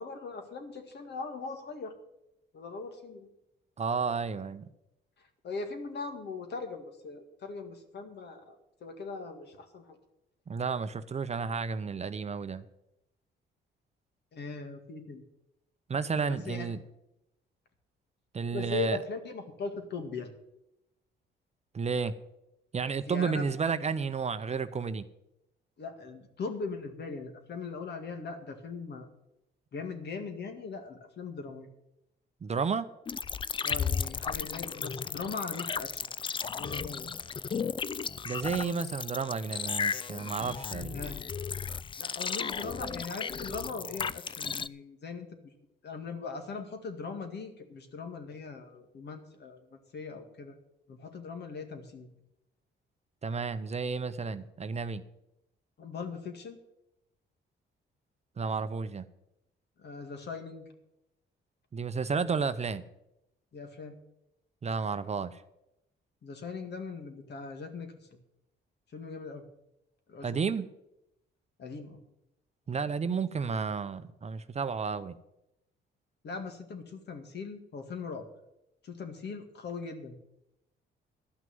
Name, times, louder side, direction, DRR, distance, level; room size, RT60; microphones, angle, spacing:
voice 1, 0.0-1.9 2.5-3.3 5.4-10.0 14.3-15.2 16.3-16.7 18.5-20.3 23.0-23.5 25.8-29.1 29.7-31.7 33.6-36.0 36.4-37.1 40.9-41.2 42.0-50.5 50.9-52.1 55.8-56.6 59.8-60.7 63.5-64.0 66.2-68.1 68.9-69.5 70.1-70.4 71.6-72.0 76.2-78.3 78.8-80.1, left 4 dB, 60° left, 2.1 m, -40 dB
voice 2, 3.8-4.7 10.5-12.6 15.9-16.8 18.3-19.0 21.7-22.1 22.7-25.1 32.4-32.9 38.2-41.0 53.2-55.0 58.4-59.0 61.7-62.8 64.6-65.4 70.2-70.7 72.7-75.2, right 5 dB, 35° right, 0.7 m, -32 dB
sound 1, 33.1-44.7, left 6 dB, 25° left, 0.4 m, -35 dB
12.5 x 6.0 x 9.4 m
cardioid pair, 90°, 20 cm